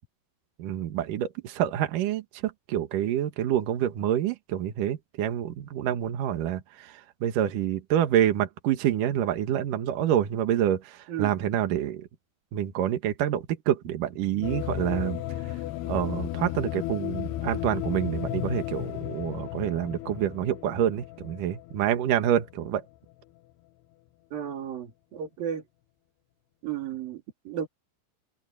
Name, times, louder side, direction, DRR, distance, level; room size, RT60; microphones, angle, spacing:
voice 1, 0.6-12.1 12.5-15.6 15.8-22.8, right 11 dB, 75° right, 2.0 m, -27 dB
sound 1, 14.4-22.6, left 14 dB, 85° left, 2.3 m, -34 dB
voice 2, 24.3-25.6 26.6-27.7, right 9 dB, 50° right, 4.0 m, -34 dB
open air
omnidirectional pair, 5.9 m